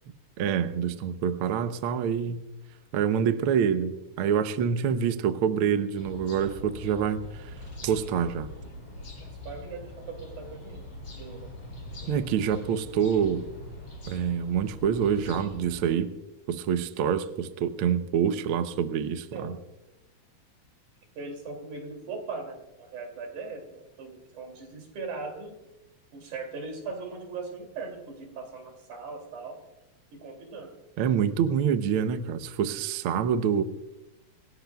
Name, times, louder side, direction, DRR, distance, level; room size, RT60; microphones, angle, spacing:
voice 1, 0.4-2.4 2.9-7.4 7.8-8.5 12.1-13.4 14.1-16.1 16.5-19.6 31.0-33.6, right 8 dB, 70° right, 10 dB, 1.3 m, -26 dB
sound 1, 5.9-15.9, left 1 dB, 50° left, 6.5 m, -43 dB
voice 2, 9.2-10.9 11.2-11.5 12.0-12.1 19.3-19.6 21.2-25.6 26.1-29.6 30.1-30.7, right 4 dB, 85° right, 3 dB, 4.2 m, -39 dB
27.5 x 17.0 x 2.3 m, 0.98 s
omnidirectional pair, 3.4 m